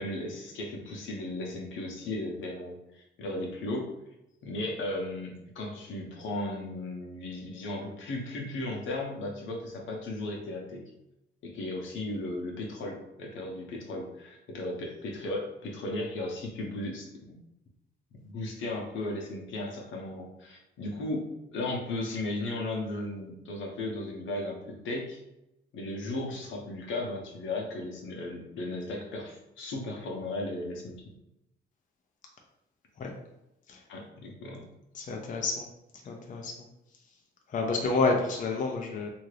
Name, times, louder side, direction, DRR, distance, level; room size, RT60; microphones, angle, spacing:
voice 1, 0.0-3.9 4.4-10.8 11.4-17.1 18.2-21.3 21.5-25.2 25.7-31.0 33.9-34.7, left 2 dB, 75° left, 0 dB, 0.8 m, -36 dB
voice 2, 34.9-35.7 36.1-36.5 37.5-39.1, left 3 dB, 40° left, 1 dB, 0.5 m, -29 dB
2.7 x 2.5 x 3.1 m, 0.87 s
cardioid pair, 90°, 20 cm